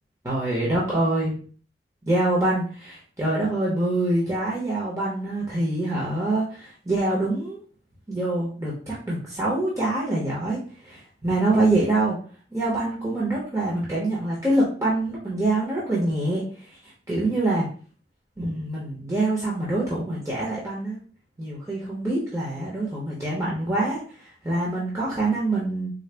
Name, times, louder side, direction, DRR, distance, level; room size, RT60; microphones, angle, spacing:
voice 1, 0.2-1.4 2.1-7.6 8.1-10.6 10.8-12.2 12.5-16.4 17.1-17.7 18.4-21.0 21.4-24.0 24.4-25.9, right 2 dB, 20° right, -6 dB, 0.8 m, -25 dB
3.8 x 2.0 x 3.3 m, 0.41 s
head